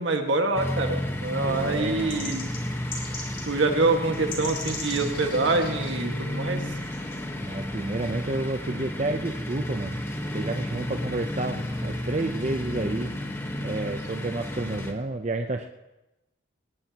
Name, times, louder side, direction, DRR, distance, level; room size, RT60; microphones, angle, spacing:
voice 1, 0.0-2.5 3.4-6.6, right 3 dB, 70° right, 4 dB, 1.7 m, -25 dB
sound 1, 0.5-14.9, left 1 dB, 10° left, 1.2 m, -32 dB
voice 2, 1.4-2.4 7.4-10.0 10.3-13.1 13.6-15.7, right 2 dB, 35° right, 5 dB, 0.6 m, -30 dB
sound 2, 2.1-3.5 3.8-3.9 4.1-5.9 6.6-7.2, left 2 dB, 30° left, 3.5 m, -38 dB
20.5 x 19.0 x 2.9 m, 0.98 s
head